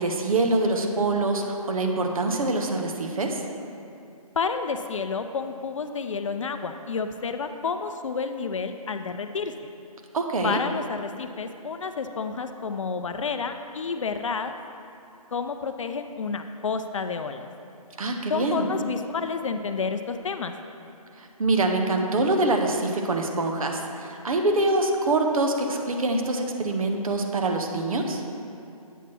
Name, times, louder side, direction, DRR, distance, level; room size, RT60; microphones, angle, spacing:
voice 1, 0.0-3.5 10.1-10.6 18.0-18.7 21.2-28.2, right 2 dB, 65° right, 3 dB, 0.8 m, -25 dB
voice 2, 4.4-9.5 10.4-14.5 15.3-17.5 18.3-20.5, left 5 dB, 55° left, 8 dB, 0.4 m, -30 dB
8.0 x 3.0 x 5.9 m, 2.5 s
hypercardioid pair, 165°, 19 cm